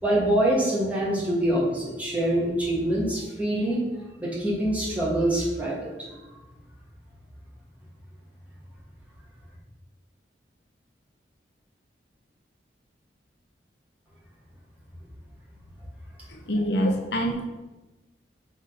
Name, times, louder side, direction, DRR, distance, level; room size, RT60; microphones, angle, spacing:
voice 1, 0.0-3.8 4.2-6.2, right 1 dB, 10° right, -6 dB, 1.8 m, -25 dB
voice 2, 16.3-17.5, equal, 70° left, 4 dB, 0.8 m, -25 dB
6.1 x 4.0 x 5.1 m, 1.1 s
head